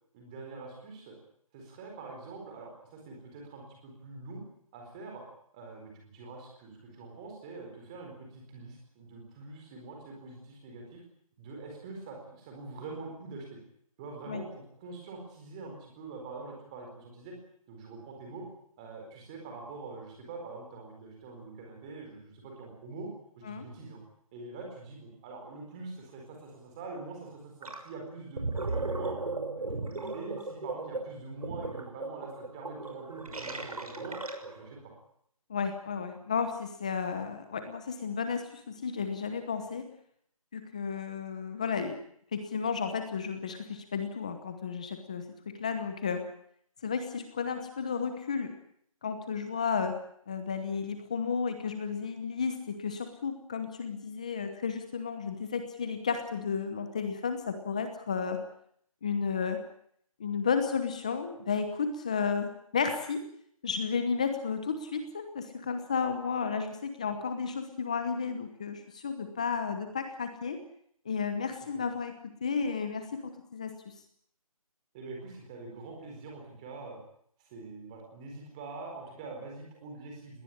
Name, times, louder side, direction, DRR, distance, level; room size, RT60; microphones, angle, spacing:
voice 1, 0.1-1.2 1.5-4.4 4.7-5.2 5.5-11.0 11.4-13.6 14.0-17.4 17.7-18.5 18.8-23.1 23.4-24.0 24.3-29.2 29.5-34.2 34.5-34.9 74.9-77.0 77.4-80.4, right 3 dB, 10° right, 1 dB, 4.3 m, -44 dB
Gurgling, 27.6-27.9 28.2-34.7, right 3 dB, 85° right, 6.3 m, -36 dB
voice 2, 35.5-39.9 40.5-42.0 42.3-46.2 46.8-48.5 49.0-49.9 50.3-58.4 59.0-59.6 60.2-63.2 63.6-70.6 71.0-72.1 72.4-73.8, left 5 dB, 10° left, 8 dB, 1.0 m, -33 dB
20.5 x 18.5 x 10.0 m, 0.67 s
hypercardioid pair, 180°, 18 cm